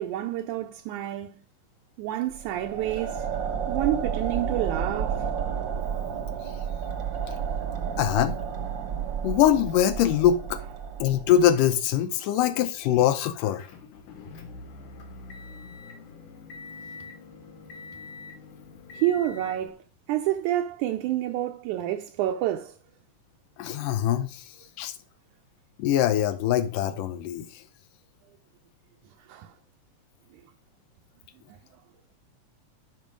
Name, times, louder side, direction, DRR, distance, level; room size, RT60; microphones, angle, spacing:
voice 1, 0.0-1.4 2.0-3.3 3.7-5.3 18.9-22.8 29.3-29.5, right 13 dB, 75° right, 2.0 m, -28 dB
sound 1, 2.3-11.6, right 7 dB, 50° right, 1.5 m, -31 dB
voice 2, 8.0-8.4 9.2-10.6 11.0-13.7 23.6-24.4 24.8-24.9 25.8-27.6, left 10 dB, 85° left, 2.3 m, -23 dB
Motor vehicle (road) / Engine, 13.6-19.7, left 4 dB, 70° left, 3.0 m, -44 dB
12.5 x 5.5 x 5.2 m
omnidirectional pair, 3.8 m